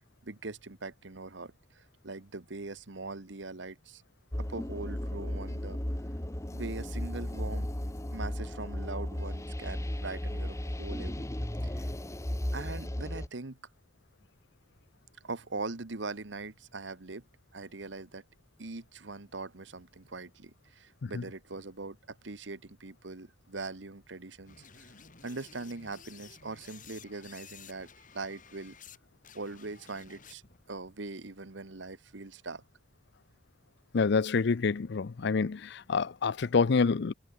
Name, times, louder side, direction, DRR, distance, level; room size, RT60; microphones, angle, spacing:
voice 1, 0.2-4.0 4.4-5.8 6.5-7.7 8.1-11.3 11.6-11.9 12.5-13.6 15.2-17.2 17.5-18.2 18.6-24.9 25.2-27.9 28.1-28.7 29.3-30.4 30.7-32.6, right 3 dB, 70° right, 1.4 m, -41 dB
sound 1, 4.3-13.3, left 1 dB, 15° left, 1.1 m, -35 dB
sound 2, 24.5-29.0 29.2-30.6, left 7 dB, 45° left, 5.4 m, -53 dB
voice 2, 33.9-37.1, left 4 dB, 65° left, 0.5 m, -27 dB
head